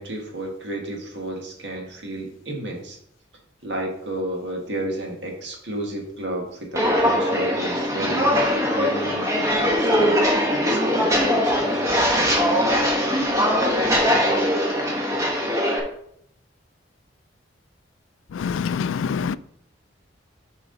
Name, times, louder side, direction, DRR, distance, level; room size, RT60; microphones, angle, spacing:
voice 1, 0.0-3.0 3.6-8.4 8.7-10.2 10.6-12.3, right 1 dB, 65° right, 1.9 m, -32 dB
Walk footsteps, 6.7-15.8, equal, 15° right, 1.3 m, -21 dB
voice 2, 18.3-19.4, left 6 dB, 85° left, 0.3 m, -25 dB
7.7 x 5.0 x 4.0 m
head